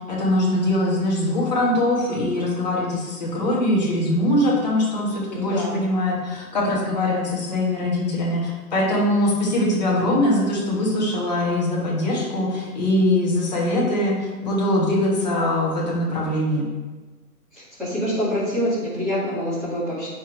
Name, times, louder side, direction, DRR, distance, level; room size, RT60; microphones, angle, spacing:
voice 1, 0.1-16.7, left 1 dB, 25° left, -3 dB, 1.5 m, -22 dB
voice 2, 5.3-5.8 17.5-20.1, equal, ahead, -15 dB, 1.9 m, -26 dB
7.9 x 6.2 x 3.3 m, 1.3 s
hypercardioid pair, 165°, 47 cm